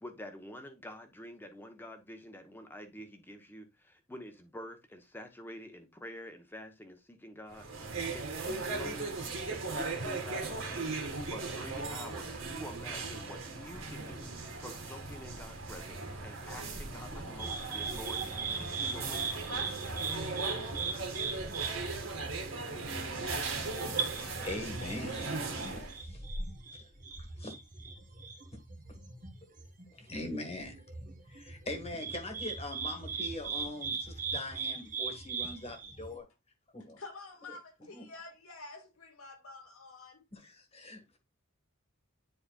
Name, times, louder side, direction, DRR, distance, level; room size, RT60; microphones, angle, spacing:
voice 1, 0.0-7.7 8.1-9.1 9.5-10.9 11.3-20.0, equal, 10° left, 1.0 m, -48 dB
sound 1, 7.5-26.0, right 3 dB, 70° right, 2.0 m, -38 dB
sound 2, 17.4-36.1, right 5 dB, 40° right, 1.3 m, -39 dB
voice 2, 24.1-26.2 26.7-26.8 27.4-27.5 30.1-30.8 31.3-36.2 36.7-37.0 37.9-38.1 40.3-41.2, left 1 dB, 30° left, 1.6 m, -42 dB
voice 3, 37.0-40.2, left 3 dB, 90° left, 2.2 m, -49 dB
10.5 x 4.3 x 2.4 m
head